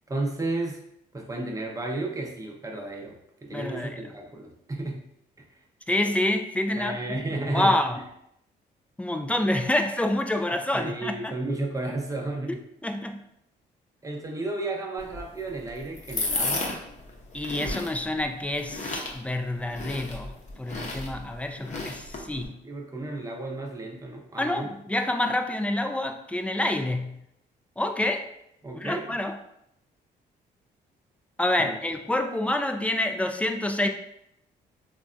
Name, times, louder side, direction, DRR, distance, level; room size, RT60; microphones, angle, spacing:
voice 1, 0.1-0.8 1.1-5.0 6.8-8.0 10.7-12.6 14.0-16.7 22.6-24.7 28.6-29.2 31.6-31.8, right 2 dB, 15° right, 1 dB, 0.7 m, -33 dB
voice 2, 3.5-4.0 5.9-7.3 7.5-8.0 9.0-11.3 12.8-13.2 17.3-22.6 24.4-27.2 27.8-28.3 28.7-29.4 31.4-33.9, left 1 dB, 5° left, 6 dB, 0.3 m, -27 dB
sound 1, 15.0-22.5, left 2 dB, 40° left, 0.7 m, -34 dB
3.3 x 2.2 x 2.5 m, 0.77 s
supercardioid pair, 65°, 19 cm